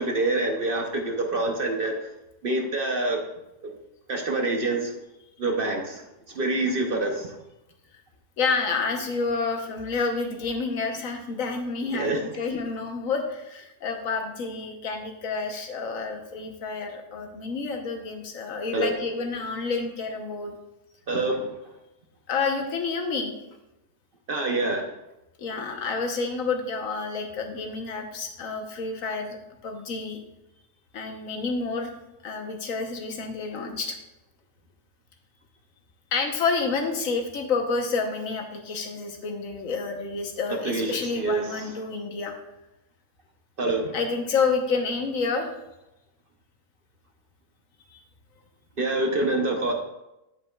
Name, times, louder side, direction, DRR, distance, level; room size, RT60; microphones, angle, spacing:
voice 1, 0.0-2.1 2.4-3.3 3.6-3.7 4.1-5.0 5.4-7.4 11.9-12.3 18.7-18.9 21.1-21.5 24.3-24.9 40.5-41.7 43.6-43.9 48.8-49.7, right 2 dB, 50° right, 3 dB, 0.7 m, -26 dB
voice 2, 8.4-20.5 22.3-23.3 25.4-30.2 30.9-31.9 32.2-34.0 36.1-42.3 43.9-45.5, left 4 dB, 60° left, 3 dB, 1.3 m, -29 dB
8.1 x 8.1 x 2.3 m, 0.92 s
omnidirectional pair, 1.7 m